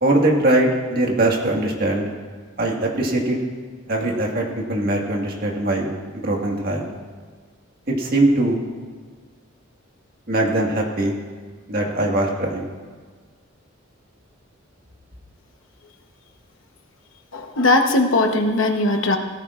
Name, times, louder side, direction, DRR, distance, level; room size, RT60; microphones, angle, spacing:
voice 1, 0.0-2.0 2.6-3.4 3.9-5.9 6.2-6.9 7.9-8.6 10.3-11.1 11.7-12.6, right 1 dB, 45° right, -1 dB, 1.7 m, -21 dB
voice 2, 17.3-19.2, left 2 dB, 70° left, 4 dB, 1.0 m, -19 dB
17.0 x 14.0 x 2.5 m, 1.5 s
head